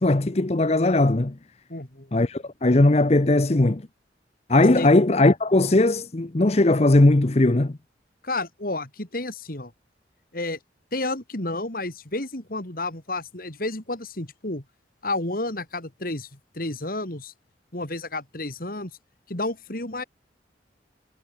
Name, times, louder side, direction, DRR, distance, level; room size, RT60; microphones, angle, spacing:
voice 1, 0.0-1.4 2.1-3.8 4.5-7.8, left 2 dB, 35° left, 0.8 m, -19 dB
voice 2, 1.7-2.1 4.7-4.9 8.2-9.7 10.3-10.6 10.9-14.6 15.0-17.3 17.7-18.9 19.3-20.0, left 2 dB, 50° left, 3.1 m, -31 dB
head